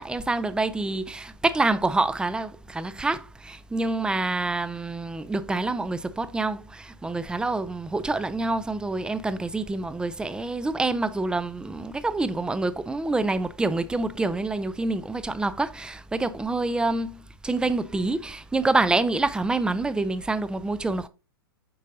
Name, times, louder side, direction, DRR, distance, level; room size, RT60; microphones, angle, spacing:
voice 1, 0.0-17.2 17.4-21.1, right 2 dB, 5° right, 0.4 m, -27 dB
7.7 x 5.2 x 2.6 m
hypercardioid pair, 105°, 12 cm